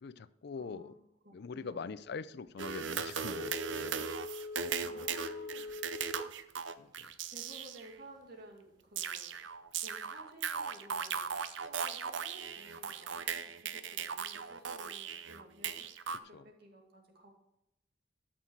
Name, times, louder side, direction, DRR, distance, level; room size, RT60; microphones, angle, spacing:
voice 1, 0.0-0.9 1.3-4.1 6.8-7.1 16.3-16.4, left 5 dB, 60° left, 16 dB, 0.5 m, -43 dB
voice 2, 0.6-1.9 4.8-5.7 7.2-9.5 9.8-15.9 16.2-17.3, right 1 dB, 55° right, 1 dB, 2.4 m, -55 dB
sound 1, 2.6-7.9 9.0-16.2, right 7 dB, 75° right, 0.6 m, -38 dB
Telephone, 3.3-6.4 6.8-6.9, left 3 dB, 20° right, 0.9 m, -43 dB
12.5 x 6.0 x 4.6 m, 0.85 s
head